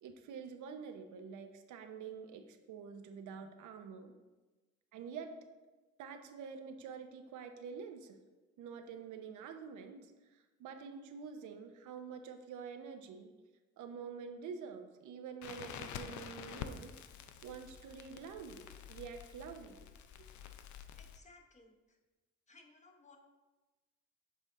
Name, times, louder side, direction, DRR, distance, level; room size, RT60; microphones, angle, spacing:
voice 1, 0.0-4.1 4.9-5.3 6.0-8.2 8.6-13.3 13.8-16.9 17.4-19.8 20.2-20.3, right 6 dB, 80° right, 6 dB, 0.7 m, -47 dB
Crackle, 15.4-21.2, left 8 dB, 70° left, 0.5 m, -48 dB
voice 2, 21.0-22.0 22.5-23.2, left 3 dB, 25° left, 3 dB, 0.9 m, -61 dB
7.5 x 4.0 x 3.6 m, 1.2 s
cardioid pair, 90°, 30 cm